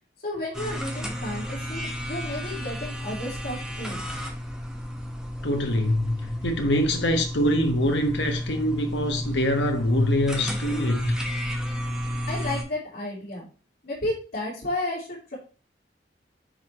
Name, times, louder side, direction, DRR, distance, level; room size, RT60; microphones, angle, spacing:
voice 1, 0.2-4.0 12.3-13.5 13.8-15.4, left 1 dB, 55° left, 3.2 m, -32 dB
sound 1, 0.5-12.6, equal, 5° right, 1.1 m, -32 dB
voice 2, 5.4-11.1, left 1 dB, 75° left, 1.3 m, -24 dB
10.0 x 3.9 x 3.1 m
head